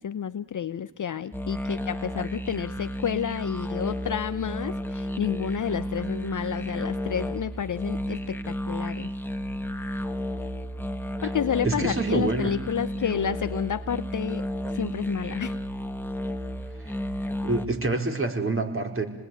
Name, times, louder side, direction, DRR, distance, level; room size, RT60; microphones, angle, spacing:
voice 1, 0.0-9.1 11.2-14.4 14.7-15.6, left 8 dB, 40° left, 13 dB, 0.9 m, -30 dB
sound 1, 1.3-17.7, equal, 5° left, 2.1 m, -32 dB
voice 2, 11.6-12.5 16.8-16.9 17.4-19.0, right 2 dB, 25° right, 4 dB, 4.6 m, -26 dB
27.5 x 20.0 x 9.3 m, 1.1 s
supercardioid pair, 60°, 48 cm